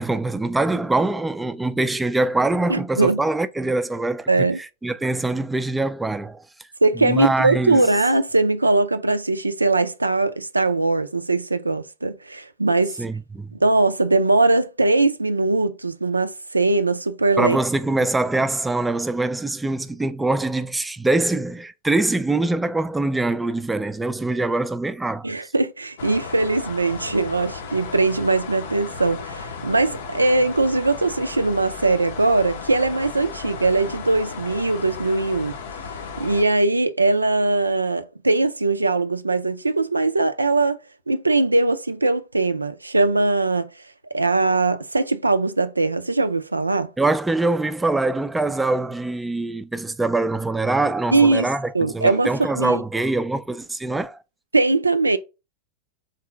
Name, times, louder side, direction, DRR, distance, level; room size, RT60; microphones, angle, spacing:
voice 1, 0.0-6.7 7.0-7.9 13.0-13.5 17.4-25.5 47.0-54.2, right 2 dB, 5° right, 0.4 m, -24 dB
voice 2, 2.7-3.2 4.3-4.6 6.8-13.0 13.6-17.6 25.2-35.5 36.2-40.8 41.1-43.7 44.1-46.9 51.1-51.5 51.7-52.3 52.5-52.8 54.5-55.2, right 3 dB, 80° right, 0.4 m, -20 dB
sound 1, 26.0-36.4, left 5 dB, 60° left, 0.6 m, -35 dB
3.8 x 3.0 x 4.4 m
figure-of-eight pair, 90°, 0 cm